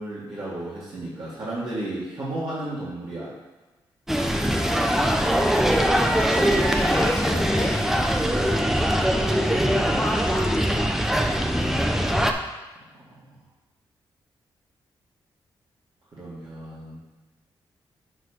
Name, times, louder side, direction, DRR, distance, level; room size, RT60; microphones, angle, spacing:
voice 1, 0.0-3.3 16.1-17.0, right 1 dB, 55° right, -10 dB, 2.3 m, -33 dB
sound 1, 4.1-12.3, equal, 5° right, 0.7 m, -22 dB
voice 2, 6.1-7.8 9.2-10.6, left 1 dB, 15° left, -3 dB, 1.1 m, -31 dB
9.7 x 4.9 x 3.0 m, 1.2 s
supercardioid pair, 50°, 10 cm